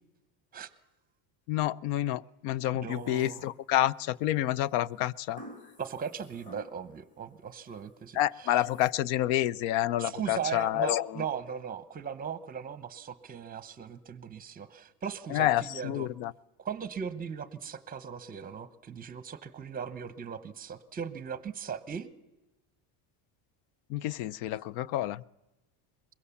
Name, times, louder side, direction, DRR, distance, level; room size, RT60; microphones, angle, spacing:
voice 1, 1.5-5.4 8.1-11.2 15.3-16.3 23.9-25.2, left 13 dB, 75° left, 23 dB, 0.7 m, -29 dB
voice 2, 2.7-3.4 5.8-8.2 10.0-16.1 16.6-22.1, right 7 dB, 20° right, 15 dB, 0.8 m, -38 dB
sound 1, 2.9-4.0 5.4-7.1 7.5-7.9 8.4-8.9, equal, 15° left, 2.1 m, -51 dB
23.5 x 22.0 x 7.1 m, 1.0 s
cardioid pair, 170°, 49 cm